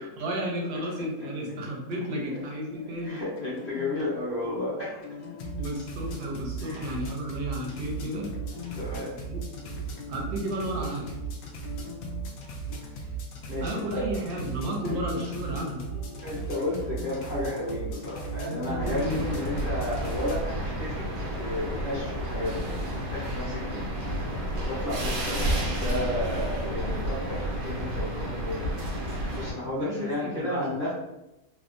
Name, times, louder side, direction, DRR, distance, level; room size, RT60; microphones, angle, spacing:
voice 1, 0.0-3.2 5.5-8.3 9.3-9.4 10.1-11.0 13.6-15.8 18.5-19.2 23.4-23.6 29.6-30.7, right 1 dB, 70° right, -1 dB, 1.1 m, -33 dB
sound 1, 1.9-13.9 14.3-19.1, left 5 dB, 85° left, 1.2 m, -44 dB
voice 2, 3.0-5.0 6.6-6.8 8.7-9.1 12.9-13.1 13.5-14.1 14.8-14.9 16.2-21.1 21.4-22.7 23.1-28.8 29.1-30.9, left 1 dB, 40° left, -8 dB, 0.9 m, -33 dB
sound 2, 5.4-20.4, right 5 dB, 70° left, 0.9 m, -37 dB
sound 3, 18.8-29.5, equal, 90° right, 1.4 m, -31 dB
3.3 x 2.0 x 2.5 m, 0.93 s
omnidirectional pair, 1.9 m